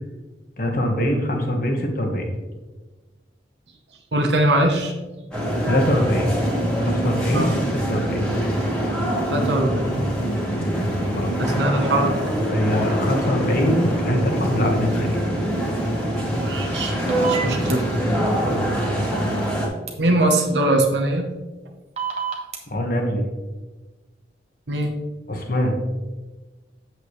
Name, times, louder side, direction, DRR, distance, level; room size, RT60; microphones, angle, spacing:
voice 1, 0.6-2.3 5.6-6.3 6.8-7.5 7.9-8.3 10.6-11.7 12.5-15.2 18.5-19.4 22.7-23.2 25.3-25.8, left 1 dB, 50° left, 3 dB, 1.5 m, -23 dB
voice 2, 4.1-4.9 7.3-7.5 9.3-10.0 11.4-12.1 16.3-17.8 20.0-21.3 24.7-25.0, right 1 dB, 85° right, 2 dB, 1.1 m, -21 dB
sound 1, 5.3-19.7, equal, 5° left, 2.0 m, -24 dB
sound 2, 17.1-17.7 19.9-20.0 22.0-22.6, right 4 dB, 40° right, 1.3 m, -24 dB
8.4 x 7.7 x 3.3 m, 1.2 s
head